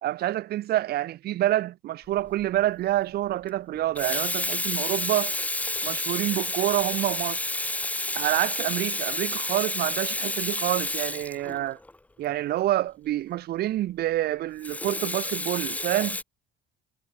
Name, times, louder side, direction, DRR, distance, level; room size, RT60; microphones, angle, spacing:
voice 1, 0.0-5.4 5.8-7.5 8.1-11.8 12.2-16.2, right 14 dB, 70° right, 1.6 m, -27 dB
Water tap faucet / Sink (filling or washing), 2.2-2.4 3.7-11.9 14.6-16.2, left 2 dB, 10° left, 1.4 m, -30 dB
cardioid pair, 110°, 17 cm